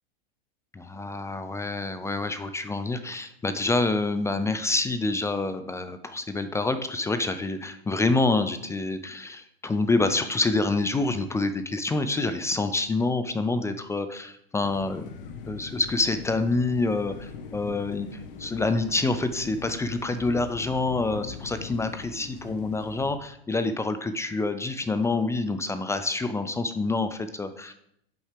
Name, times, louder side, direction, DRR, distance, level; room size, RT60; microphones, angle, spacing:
voice 1, 0.7-15.1 15.5-27.7, left 3 dB, 10° left, 10 dB, 0.4 m, -27 dB
sound 1, 14.6-23.1, left 5 dB, 65° left, 1.0 m, -41 dB
7.8 x 5.7 x 3.4 m, 0.72 s
hypercardioid pair, 95°, 29 cm